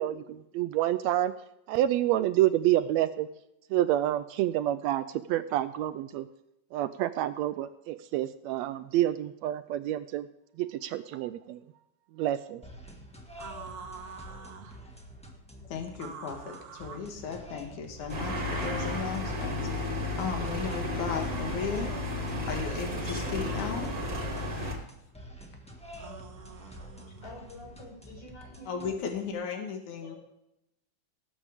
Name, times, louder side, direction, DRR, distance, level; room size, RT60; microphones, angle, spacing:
voice 1, 0.0-1.3 1.7-3.3 3.7-6.3 6.7-10.3 10.6-11.6 12.2-12.6, right 13 dB, 80° right, 13 dB, 1.7 m, -28 dB
sound 1, 12.6-29.3, equal, 5° left, 0.5 m, -48 dB
sound 2, 13.4-14.8 15.9-17.1 18.2-19.2 20.6-22.0 23.4-24.6 26.0-27.3, right 6 dB, 60° right, 1.9 m, -46 dB
voice 2, 15.7-19.9 20.2-21.9 22.5-23.9 28.7-30.2, left 6 dB, 90° left, 4 dB, 3.0 m, -36 dB
sound 3, 18.1-24.7, left 1 dB, 30° right, 2.6 m, -33 dB
voice 3, 27.2-29.0 30.0-30.1, left 1 dB, 60° left, -3 dB, 7.0 m, -47 dB
19.0 x 8.5 x 3.5 m, 0.85 s
omnidirectional pair, 3.3 m